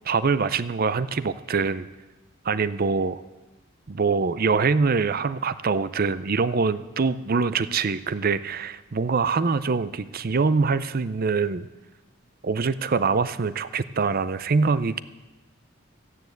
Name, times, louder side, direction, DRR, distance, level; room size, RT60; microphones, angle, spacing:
voice 1, 0.0-1.9 2.4-3.2 3.9-11.7 12.4-15.0, right 4 dB, 45° right, 15 dB, 0.5 m, -24 dB
14.0 x 9.6 x 7.9 m, 1.1 s
head